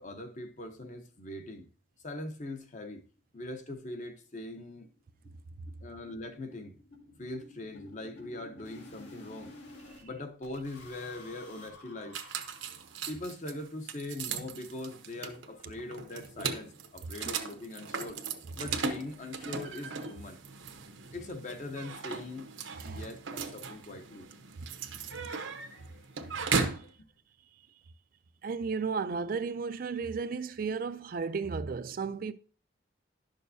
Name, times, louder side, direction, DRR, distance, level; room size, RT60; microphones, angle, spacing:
voice 1, 0.0-1.7 2.0-3.0 3.3-4.9 5.8-6.8 7.2-12.4 13.1-18.2 18.6-20.4 21.1-22.5 22.8-24.3 25.2-26.9, left 2 dB, 40° left, 0.9 m, -42 dB
sound 1, 3.2-3.3 3.6-3.7 4.0-4.1 4.4-4.6 4.8-10.0 10.4-13.2, left 2 dB, 70° left, 2.0 m, -52 dB
sound 2, 12.1-26.9, right 5 dB, 90° right, 1.0 m, -37 dB
voice 2, 28.4-32.3, right 5 dB, 50° right, 0.4 m, -34 dB
11.0 x 6.5 x 2.7 m
head